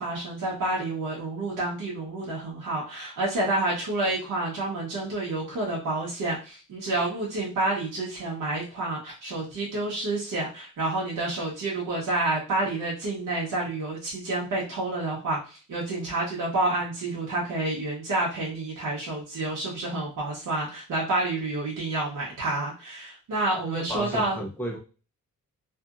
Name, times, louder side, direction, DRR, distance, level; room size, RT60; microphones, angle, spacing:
voice 1, 0.0-24.4, right 2 dB, 75° right, -5 dB, 1.0 m, -29 dB
voice 2, 23.6-24.8, equal, 5° left, -1 dB, 0.8 m, -33 dB
2.7 x 2.5 x 2.4 m, 0.34 s
wide cardioid pair, 120°, 32 cm